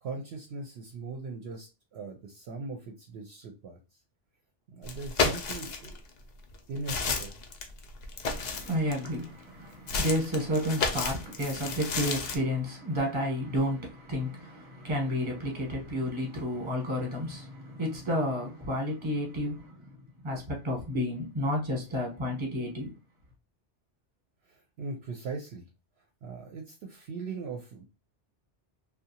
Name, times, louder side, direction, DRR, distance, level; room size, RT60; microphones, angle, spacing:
voice 1, 0.0-3.8 4.7-6.0 6.7-7.4 24.4-25.7 26.2-27.8, right 3 dB, 65° right, 0.8 m, -39 dB
sound 1, 4.8-6.0 6.5-9.2 9.9-12.4, left 4 dB, 60° left, 0.5 m, -32 dB
voice 2, 8.2-20.0 20.2-22.9, equal, 25° right, 1.0 m, -31 dB
2.7 x 2.2 x 2.7 m
omnidirectional pair, 1.2 m